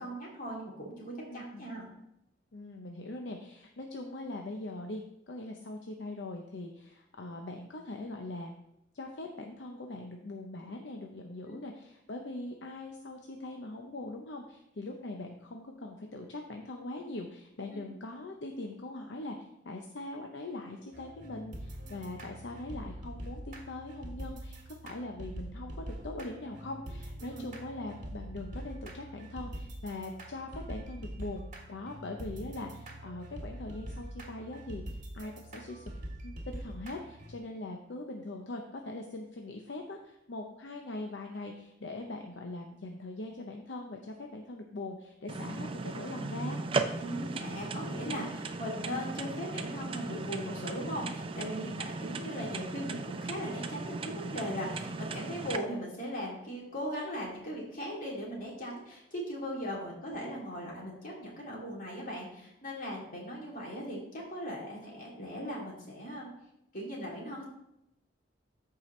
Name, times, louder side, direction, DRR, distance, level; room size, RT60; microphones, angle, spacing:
voice 1, 0.0-1.9 11.5-11.6 17.7-17.8 27.3-27.4 47.0-66.3 66.7-67.4, equal, 50° left, -3 dB, 2.7 m, -39 dB
voice 2, 1.3-1.7 2.5-8.5 8.9-31.4 31.7-35.9 36.2-46.6 51.6-51.8, left 2 dB, 70° left, 2 dB, 0.7 m, -42 dB
sound 1, 20.9-37.4, right 1 dB, 45° right, 1.7 m, -44 dB
sound 2, 45.3-55.6, right 3 dB, 30° right, 0.5 m, -37 dB
13.5 x 4.7 x 3.2 m, 0.81 s
head